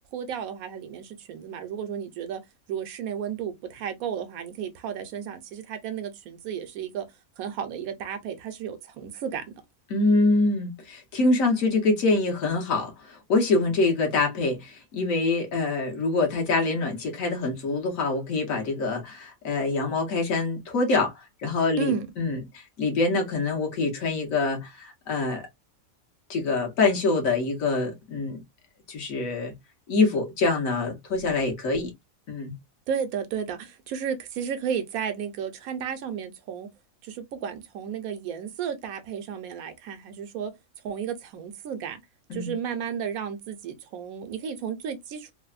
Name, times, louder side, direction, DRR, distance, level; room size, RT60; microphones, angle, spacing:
voice 1, 0.1-2.4 2.7-7.1 7.4-9.5 21.8-22.1 32.9-36.7 37.0-40.5 40.8-42.0 42.3-45.3, right 8 dB, 75° right, 1.0 m, -33 dB
voice 2, 9.9-25.4 26.3-28.4 28.9-29.5 29.9-31.9 32.3-32.5 42.3-42.5, left 3 dB, 65° left, 1.3 m, -25 dB
3.2 x 2.0 x 2.3 m
omnidirectional pair, 1.5 m